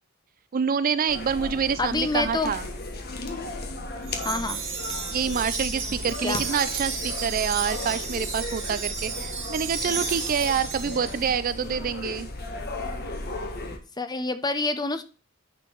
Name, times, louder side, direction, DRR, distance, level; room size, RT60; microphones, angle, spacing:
voice 1, 0.5-2.6 5.1-12.3, right 6 dB, 45° right, 14 dB, 0.4 m, -27 dB
sound 1, 1.1-13.8, left 2 dB, 50° left, 1.4 m, -35 dB
voice 2, 1.8-2.5 4.2-4.6 6.2-6.5 14.0-15.0, left 3 dB, 20° left, 10 dB, 0.7 m, -27 dB
Wind chime, 4.0-11.5, right 5 dB, 65° right, 1.8 m, -33 dB
9.7 x 4.5 x 4.5 m, 0.35 s
head